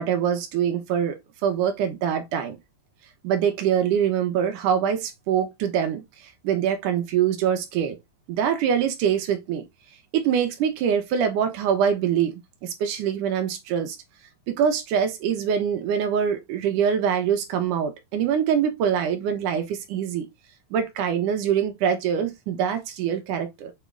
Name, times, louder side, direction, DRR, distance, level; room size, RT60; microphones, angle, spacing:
voice 1, 0.0-2.6 3.2-8.0 8.3-9.7 10.1-14.0 14.5-20.3 20.7-23.7, right 8 dB, 75° right, 2.0 m, -24 dB
7.2 x 3.6 x 3.8 m
omnidirectional pair, 4.8 m